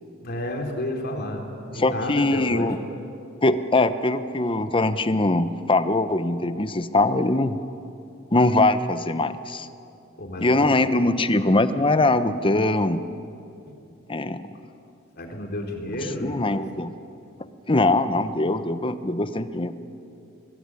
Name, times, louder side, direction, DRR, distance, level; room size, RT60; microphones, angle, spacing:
voice 1, 0.2-2.7 10.2-11.2 15.2-16.4, left 1 dB, 50° left, 2 dB, 3.7 m, -31 dB
voice 2, 1.8-2.8 3.4-7.6 8.3-9.7 10.4-13.0 14.1-14.4 16.2-16.9 17.7-19.7, left 2 dB, 25° left, 12 dB, 0.9 m, -22 dB
23.5 x 20.0 x 9.8 m, 2.7 s
head